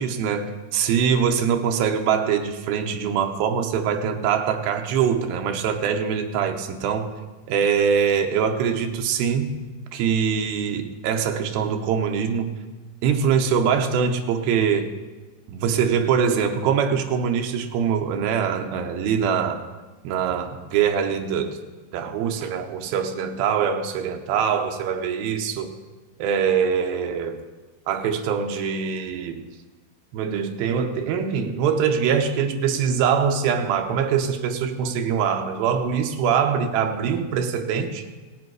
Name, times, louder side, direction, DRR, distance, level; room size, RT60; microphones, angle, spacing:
voice 1, 0.0-7.1 7.5-9.6 9.9-12.5 13.0-14.9 15.5-19.6 20.0-21.6 21.9-25.7 26.2-27.4 27.9-29.4 30.1-38.1, right 7 dB, 75° right, 4 dB, 2.5 m, -23 dB
17.5 x 7.8 x 4.7 m, 1.2 s
omnidirectional pair, 4.6 m